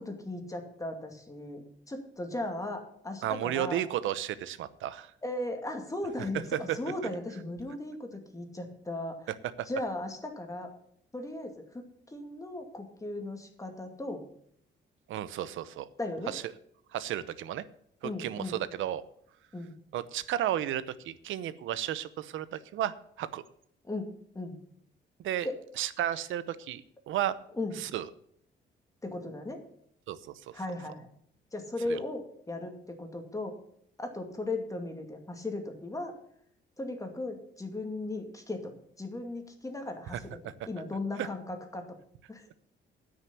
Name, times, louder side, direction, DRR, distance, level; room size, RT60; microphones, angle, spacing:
voice 1, 0.0-3.8 5.2-9.3 9.6-10.7 11.1-14.2 16.0-16.3 18.0-18.6 19.5-19.7 23.8-24.1 24.3-24.6 25.4-25.5 27.5-27.8 29.0-29.6 30.5-31.1 31.5-33.6 34.0-36.1 36.8-38.7 39.0-42.0 42.3-42.4, left 2 dB, 15° left, 4 dB, 2.3 m, -37 dB
voice 2, 3.2-5.1 6.5-6.8 9.6-9.7 15.1-15.9 16.3-16.4 16.9-17.6 18.0-19.0 19.9-23.4 25.2-25.5 25.8-27.4 27.8-28.1 30.1-30.6 31.9-32.0 40.1-40.2 40.4-40.5 41.2-41.3, right 11 dB, 80° right, 16 dB, 0.8 m, -33 dB
9.2 x 6.6 x 8.5 m, 0.68 s
cardioid pair, 90°, 20 cm